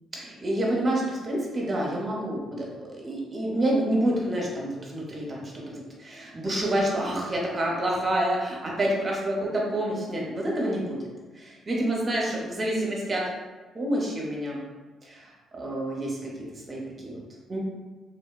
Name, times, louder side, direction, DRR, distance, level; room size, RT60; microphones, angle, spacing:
voice 1, 0.1-11.0 11.3-13.2 13.7-14.6 15.0-17.2 17.5-17.6, right 1 dB, 35° right, -3 dB, 0.7 m, -28 dB
3.0 x 2.1 x 2.3 m, 1.3 s
cardioid pair, 90°, 0 cm